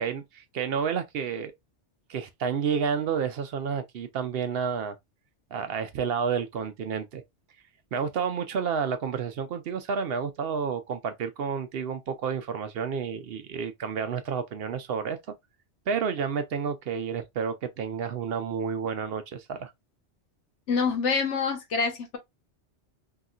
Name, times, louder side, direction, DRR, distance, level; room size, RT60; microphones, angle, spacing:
voice 1, 0.0-1.5 2.1-4.9 5.5-7.2 7.9-15.2 15.9-19.7, right 6 dB, 65° right, 0.7 m, -30 dB
voice 2, 20.7-22.2, left 5 dB, 80° left, 1.2 m, -26 dB
3.1 x 2.8 x 2.4 m
omnidirectional pair, 1.2 m